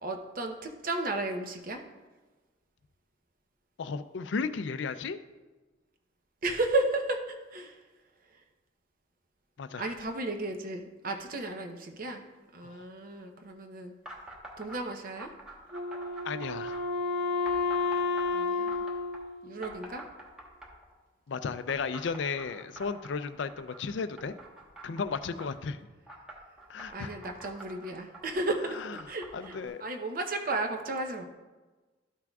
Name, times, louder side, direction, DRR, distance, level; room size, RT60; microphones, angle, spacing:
voice 1, 0.0-1.8 6.4-7.2 7.5-7.7 9.8-12.2 12.5-13.9 14.6-15.3 18.3-18.8 19.4-20.0 26.9-28.8 29.1-29.5 29.8-31.2, right 2 dB, 50° right, 4 dB, 0.8 m, -33 dB
voice 2, 3.8-5.2 9.6-9.9 12.6-12.9 16.2-16.8 21.3-24.4 24.8-25.9 26.7-27.1 28.7-29.0 29.3-29.8, left 5 dB, 75° left, 11 dB, 0.4 m, -34 dB
sound 1, 14.0-14.8 15.2-16.8 17.4-19.2 19.6-20.9 21.7-25.5 26.1-29.7, right 1 dB, 5° right, 1.1 m, -47 dB
Wind instrument woodwind instrument, 15.7-20.2, left 3 dB, 65° right, 1.8 m, -31 dB
12.5 x 5.9 x 2.3 m, 1.2 s
head